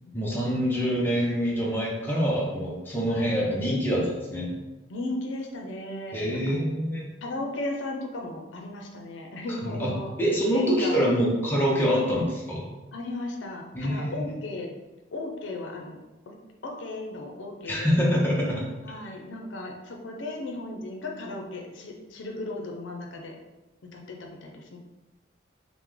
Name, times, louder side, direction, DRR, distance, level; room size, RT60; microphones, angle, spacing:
voice 1, 0.1-4.5 6.1-7.1 9.6-9.9 10.2-12.7 13.7-14.3 17.6-18.6, equal, 10° left, -5 dB, 0.5 m, -25 dB
voice 2, 4.9-6.6 7.2-10.1 10.4-11.1 11.9-12.2 12.9-14.7 15.1-16.0 16.3-16.4 16.6-18.0 18.8-23.4 23.9-24.8, left 2 dB, 85° left, 2 dB, 0.5 m, -36 dB
3.0 x 2.0 x 3.5 m, 1.1 s
head